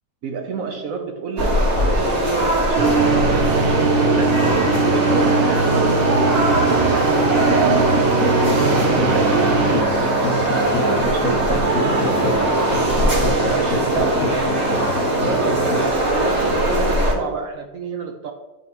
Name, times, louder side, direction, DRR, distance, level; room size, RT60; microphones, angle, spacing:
voice 1, 0.2-8.6 9.0-10.2 10.8-14.4 15.1-18.3, right 5 dB, 60° right, 4 dB, 1.0 m, -28 dB
sound 1, 1.4-17.1, right 1 dB, 45° right, 1.9 m, -20 dB
sound 2, 2.7-9.8, right 4 dB, 80° right, 0.5 m, -20 dB
sound 3, 7.2-15.9, left 2 dB, 70° left, 1.5 m, -27 dB
9.4 x 4.8 x 3.0 m, 1.0 s
omnidirectional pair, 1.8 m